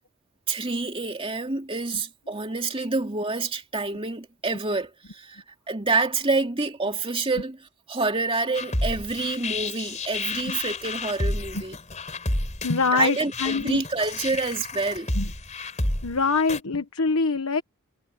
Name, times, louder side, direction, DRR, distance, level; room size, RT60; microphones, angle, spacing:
voice 1, 0.5-7.6 7.9-11.8 12.9-15.1, right 3 dB, 25° right, 2.6 m, -27 dB
sound 1, 8.5-16.6, left 2 dB, 35° left, 4.0 m, -30 dB
voice 2, 12.6-13.8 15.1-15.3 16.0-17.6, left 4 dB, 75° left, 1.2 m, -24 dB
head